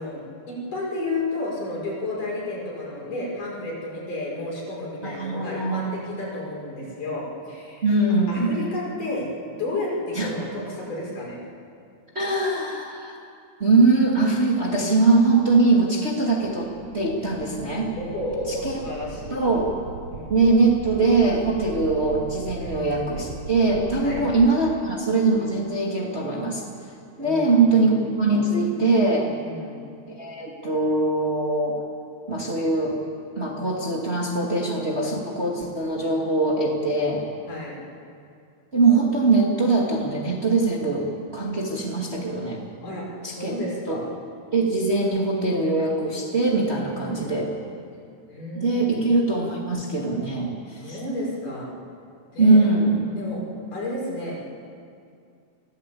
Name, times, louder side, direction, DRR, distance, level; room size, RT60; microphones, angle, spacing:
voice 1, 0.0-7.9 8.3-11.4 18.0-19.4 20.1-20.3 22.6-22.9 24.0-24.4 27.2-27.8 29.4-29.8 37.5-37.8 42.8-44.1 46.9-47.4 48.3-49.1 50.8-51.7 52.3-52.6 53.2-53.4 53.7-54.4, left 2 dB, 75° left, -4 dB, 6.9 m, -32 dB
voice 2, 5.0-6.0 7.8-8.5 10.1-10.3 12.1-13.2 13.6-17.9 18.6-18.8 19.3-19.7 20.3-26.6 27.2-29.3 30.1-31.8 32.3-33.0 33.4-37.3 38.7-42.6 43.2-43.6 43.9-44.0 44.5-47.5 48.5-51.0 52.4-53.0, right 3 dB, 20° right, -2 dB, 2.1 m, -22 dB
sound 1, 16.4-24.5, right 5 dB, 60° right, 1.5 m, -38 dB
25.0 x 16.5 x 8.5 m, 2.4 s
omnidirectional pair, 3.7 m